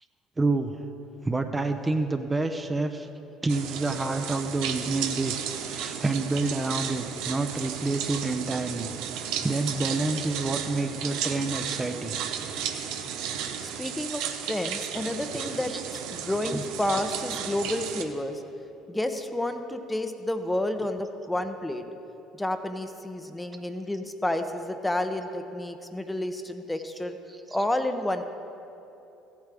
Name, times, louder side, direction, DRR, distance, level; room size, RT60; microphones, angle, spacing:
voice 1, 0.4-0.7 1.2-3.1 3.4-12.2 15.7-15.8 16.5-16.6, right 3 dB, 20° right, 6 dB, 0.7 m, -28 dB
sound 1, 3.5-18.0, right 8 dB, 70° right, 0.7 m, -34 dB
voice 2, 13.6-18.4 18.9-21.8 22.3-27.2 27.5-28.2, left 1 dB, 10° left, 7 dB, 0.8 m, -30 dB
15.5 x 8.2 x 3.4 m, 2.9 s
hypercardioid pair, 60°, 0 cm